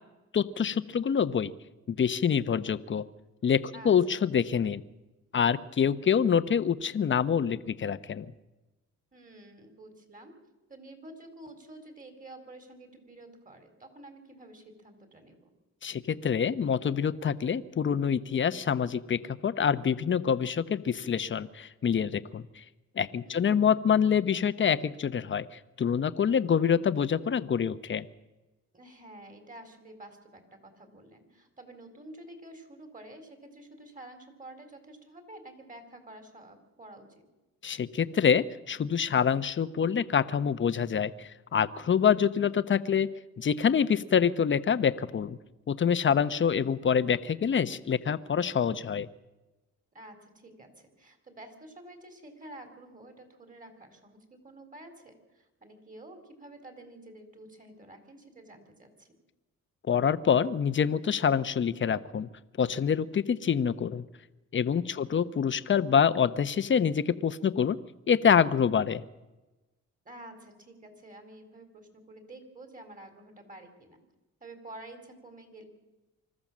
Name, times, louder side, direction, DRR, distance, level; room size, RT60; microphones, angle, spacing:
voice 1, 0.3-1.5 1.9-3.0 3.4-4.8 5.3-8.2 15.8-22.6 23.0-28.0 37.6-43.1 43.4-45.4 45.7-49.1 59.9-62.3 62.6-64.0 64.5-67.8 68.1-69.0, left 7 dB, 40° left, 13 dB, 1.0 m, -26 dB
voice 2, 9.1-10.3 10.7-15.5 23.2-23.5 28.7-37.3 47.5-47.8 49.9-59.1 64.9-65.1 70.0-74.0 74.4-75.6, right 1 dB, 25° right, 6 dB, 4.2 m, -49 dB
25.0 x 13.5 x 7.5 m, 1.1 s
cardioid pair, 90°, 30 cm